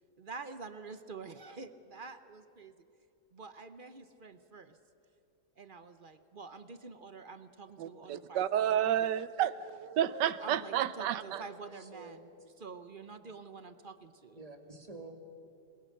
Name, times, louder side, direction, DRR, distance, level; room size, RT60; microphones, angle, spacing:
voice 1, 0.2-2.7 3.3-4.8 5.6-9.1 10.4-12.3 12.6-14.4, right 4 dB, 40° right, 11 dB, 0.8 m, -47 dB
voice 2, 7.8-11.4, right 10 dB, 90° right, 16 dB, 1.4 m, -31 dB
voice 3, 11.8-12.3 14.4-15.2, right 3 dB, 20° right, 4 dB, 2.1 m, -49 dB
27.5 x 21.5 x 6.6 m, 2.8 s
omnidirectional pair, 1.8 m